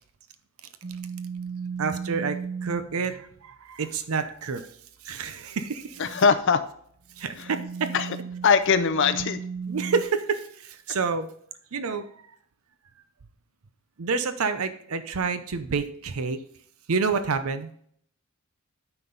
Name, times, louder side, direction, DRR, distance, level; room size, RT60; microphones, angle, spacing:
sound 1, 0.8-2.9 5.9-6.3 7.2-10.0, right 6 dB, 30° right, 0.3 m, -35 dB
voice 1, 1.8-4.7 5.0-6.0 7.2-7.9 9.7-11.3 11.7-12.1 14.0-16.4 16.9-17.7, right 5 dB, 75° right, 10 dB, 0.6 m, -28 dB
voice 2, 6.0-6.6 7.4-7.5 7.9-8.2 8.4-9.4, left 5 dB, 55° left, 11 dB, 0.5 m, -21 dB
9.3 x 6.0 x 3.9 m, 0.63 s
head